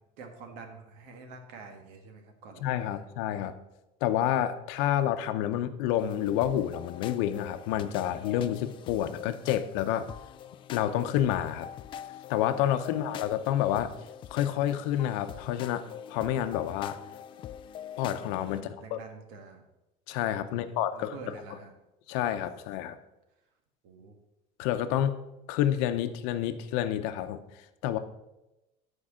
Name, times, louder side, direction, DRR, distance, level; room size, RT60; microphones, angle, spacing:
voice 1, 0.0-3.0 12.8-13.0 18.5-19.7 20.4-21.7 23.8-24.2, right 4 dB, 70° right, 5 dB, 1.7 m, -47 dB
voice 2, 2.6-3.5 4.0-10.1 10.7-11.7 12.3-13.9 14.3-17.0 18.0-19.0 20.1-21.1 22.1-23.0 24.6-25.2 25.5-28.0, left 11 dB, 75° left, 10 dB, 0.8 m, -29 dB
sound 1, 6.0-18.6, left 10 dB, 30° left, 0.3 m, -44 dB
11.5 x 4.7 x 6.3 m, 0.97 s
cardioid pair, 155°, 16 cm